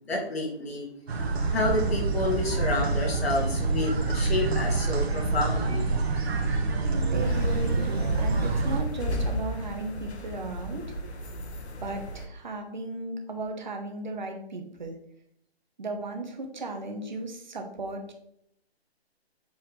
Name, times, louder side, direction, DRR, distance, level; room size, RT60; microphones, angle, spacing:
voice 1, 0.1-0.9 1.5-5.9, left 2 dB, 70° left, -1 dB, 2.2 m, -29 dB
sound 1, 1.1-8.8, right 3 dB, 70° right, 1.7 m, -26 dB
voice 2, 6.8-11.0 11.8-15.0 15.8-18.1, right 2 dB, 45° right, 3 dB, 1.0 m, -36 dB
sound 2, 7.2-12.3, left 1 dB, 85° left, 1.1 m, -35 dB
7.3 x 4.2 x 3.2 m, 0.73 s
hypercardioid pair, 180°, 32 cm